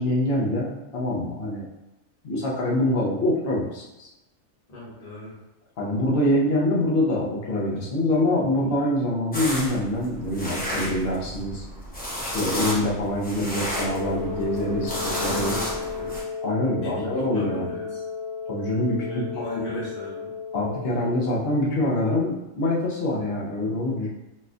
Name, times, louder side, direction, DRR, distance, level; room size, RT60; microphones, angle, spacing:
voice 1, 0.0-1.6 2.2-4.1 5.8-11.6 12.2-15.6 16.4-17.7 18.5-19.2 20.5-24.1, left 1 dB, 55° left, -4 dB, 0.8 m, -25 dB
voice 2, 4.7-5.4 5.8-6.0 14.8-16.2 16.8-18.0 19.1-20.3, left 1 dB, 35° left, -8 dB, 1.1 m, -37 dB
sound 1, 9.3-16.2, equal, 10° left, 0.6 m, -32 dB
Wind instrument woodwind instrument, 13.7-21.6, left 5 dB, 30° right, 0.6 m, -34 dB
4.1 x 2.2 x 2.5 m, 0.95 s
omnidirectional pair, 1.4 m